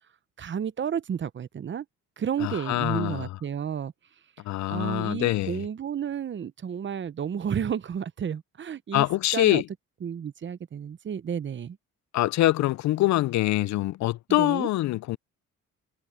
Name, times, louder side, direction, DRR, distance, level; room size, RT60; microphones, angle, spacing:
voice 1, 0.4-1.9 2.2-3.9 4.7-9.1 9.3-9.6 10.0-11.8 14.3-14.7, right 8 dB, 40° right, 0.8 m, -31 dB
voice 2, 2.4-3.3 4.4-5.6 8.9-9.7 12.1-15.2, left 16 dB, 65° left, 0.4 m, -24 dB
cardioid pair, 90°, 30 cm